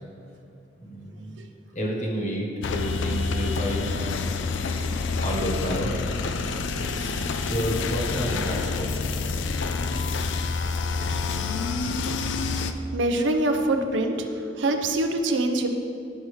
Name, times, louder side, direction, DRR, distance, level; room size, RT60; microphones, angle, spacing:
voice 1, 0.8-1.4 1.7-4.3 5.2-6.1 6.9-8.9, equal, 40° left, -1 dB, 1.3 m, -30 dB
sound 1, 2.6-12.7, left 4 dB, 75° left, 0.4 m, -28 dB
voice 2, 12.9-14.3 14.6-15.7, right 2 dB, 70° right, 5 dB, 0.6 m, -24 dB
11.0 x 5.4 x 3.2 m, 2.6 s
head